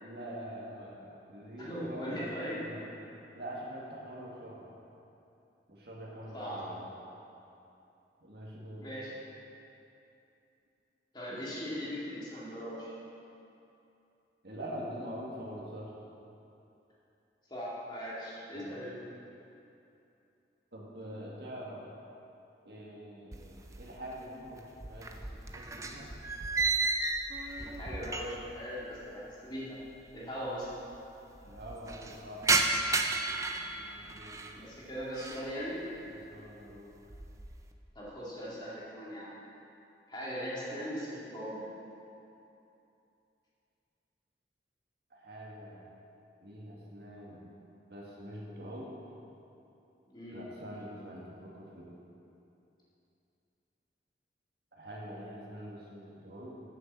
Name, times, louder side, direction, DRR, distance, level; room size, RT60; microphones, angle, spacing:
voice 1, 0.0-2.8 3.3-4.6 5.7-6.9 8.2-8.9 14.4-15.9 18.5-18.8 20.7-21.8 22.6-26.1 31.4-32.5 33.8-34.4 36.0-36.9 45.1-45.9 46.4-47.5 47.9-48.9 50.3-51.9 54.7-56.6, equal, 60° right, -4 dB, 1.9 m, -44 dB
voice 2, 1.6-2.6 6.3-6.6 8.8-9.2 11.1-12.9 17.5-19.0 27.6-29.8 30.1-30.7 34.6-35.8 37.9-39.3 40.1-41.7 50.1-50.5, equal, 25° left, -7 dB, 2.2 m, -39 dB
sound 1, 23.3-24.2 24.5-28.6 28.8-28.9 29.8-29.9 30.1-30.2 30.5-31.0 31.4-34.6 35.0-35.5 36.0-36.3 36.8-37.7, right 3 dB, 15° right, 0.5 m, -33 dB
9.0 x 7.1 x 7.4 m, 2.8 s
head